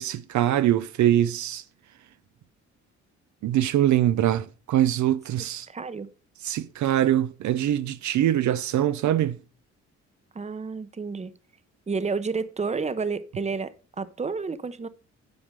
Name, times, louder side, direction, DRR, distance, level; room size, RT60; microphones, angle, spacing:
voice 1, 0.0-1.6 3.4-5.7 6.4-9.4, right 12 dB, 70° right, 0.7 m, -23 dB
voice 2, 5.7-6.1 10.3-11.3 11.9-14.9, right 4 dB, 20° right, 0.9 m, -30 dB
10.5 x 5.0 x 6.7 m
cardioid pair, 90°, 30 cm